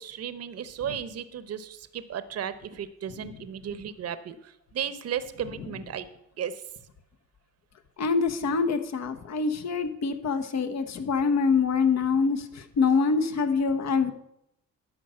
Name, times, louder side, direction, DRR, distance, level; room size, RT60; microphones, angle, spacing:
voice 1, 0.0-6.1 6.4-6.6, right 9 dB, 55° right, 13 dB, 0.9 m, -35 dB
voice 2, 8.0-14.1, left 5 dB, 60° left, 7 dB, 1.2 m, -25 dB
11.5 x 5.1 x 7.7 m, 0.79 s
cardioid pair, 90°, 30 cm